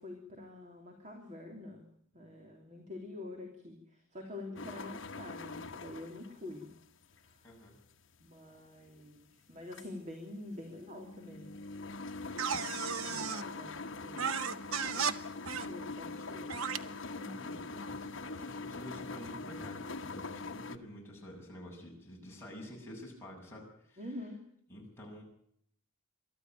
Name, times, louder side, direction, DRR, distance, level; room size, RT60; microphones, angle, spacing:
voice 1, 0.0-1.8 2.1-6.7 7.2-7.3 8.2-11.5 12.7-13.7 14.0-14.4 15.7-16.5 17.2-17.3 24.0-24.4, left 2 dB, 35° right, 2 dB, 3.1 m, -46 dB
sound 1, 4.6-20.8, left 3 dB, 65° left, 1.2 m, -43 dB
voice 2, 7.4-7.8 13.3-13.6 16.2-16.5 17.3-24.1 24.7-25.2, left 1 dB, 10° left, -3 dB, 7.0 m, -49 dB
sound 2, 12.4-13.4 14.2-15.1 15.5-15.7 16.5-16.8, right 6 dB, 85° right, 0.9 m, -34 dB
23.0 x 13.0 x 9.1 m, 0.69 s
head